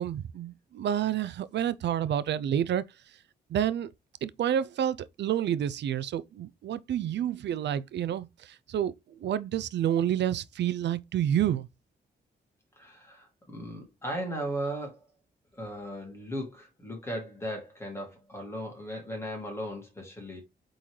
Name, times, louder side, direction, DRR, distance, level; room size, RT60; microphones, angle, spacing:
voice 1, 0.0-2.8 3.5-3.9 4.2-8.3 8.7-8.9 9.2-11.7, right 10 dB, 80° right, 0.5 m, -29 dB
voice 2, 12.8-15.0 15.5-20.4, equal, 15° left, 2.5 m, -37 dB
8.4 x 3.9 x 3.2 m
wide cardioid pair, 160°, 18 cm